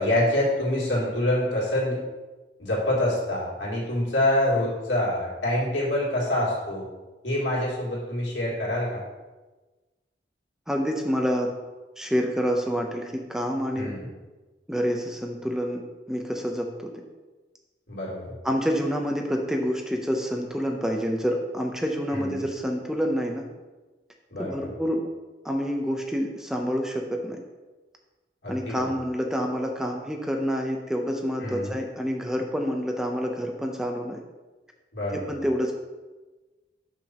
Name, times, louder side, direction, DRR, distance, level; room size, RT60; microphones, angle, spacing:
voice 1, 0.0-2.0 2.6-6.9 7.2-9.0 13.8-14.1 17.9-18.3 22.1-22.4 24.3-24.7 28.4-28.9 31.4-31.7 34.9-35.4, left 1 dB, 90° left, -5 dB, 2.6 m, -26 dB
voice 2, 10.7-11.5 12.0-13.9 14.7-15.8 16.1-16.9 18.4-23.5 24.4-25.0 25.4-27.4 28.5-34.2 35.1-35.7, equal, 5° right, 2 dB, 0.6 m, -27 dB
5.9 x 4.5 x 6.1 m, 1.2 s
head